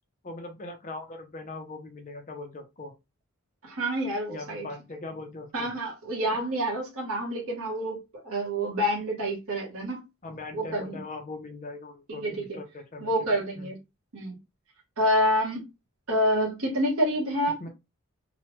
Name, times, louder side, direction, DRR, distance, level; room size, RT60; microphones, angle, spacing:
voice 1, 0.2-2.9 4.3-5.7 10.2-13.7 17.6-17.7, left 2 dB, 35° left, 0.5 m, -40 dB
voice 2, 3.6-4.7 5.5-10.0 10.5-11.0 12.1-12.4 13.0-13.8 14.1-14.4 15.0-15.7 16.1-17.7, equal, 75° right, 0.9 m, -28 dB
3.0 x 2.1 x 2.9 m
head